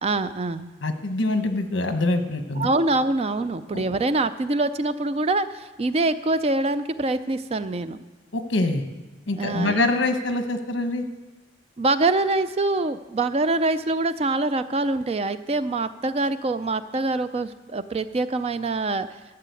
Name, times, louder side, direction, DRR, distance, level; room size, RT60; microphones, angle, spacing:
voice 1, 0.0-0.7 2.6-8.0 9.4-9.9 11.8-19.1, right 2 dB, 30° right, 12 dB, 0.4 m, -24 dB
voice 2, 0.8-2.7 3.7-3.8 8.3-8.8 9.3-11.0, left 2 dB, 70° left, 7 dB, 1.1 m, -24 dB
12.5 x 6.7 x 8.3 m, 1.2 s
head